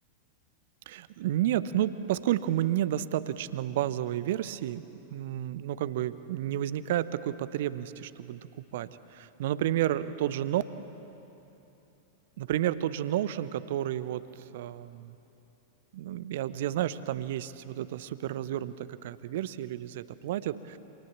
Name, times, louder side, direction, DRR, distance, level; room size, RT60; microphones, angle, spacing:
voice 1, 0.9-4.8 5.1-8.5 8.7-10.6 12.4-14.3 14.5-15.2 15.9-20.8, right 12 dB, 55° right, 15 dB, 0.9 m, -31 dB
28.5 x 27.0 x 7.4 m, 3.0 s
figure-of-eight pair, 90°, 0 cm